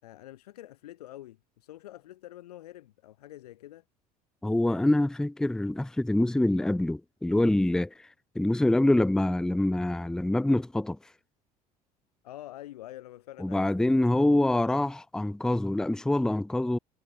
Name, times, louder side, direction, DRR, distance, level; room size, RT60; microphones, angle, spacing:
voice 1, 0.0-3.8 12.2-13.7, left 14 dB, 85° left, 6.9 m, -46 dB
voice 2, 4.4-7.9 8.4-11.0 13.4-16.8, left 1 dB, 5° left, 0.5 m, -25 dB
hypercardioid pair, 70°, 19 cm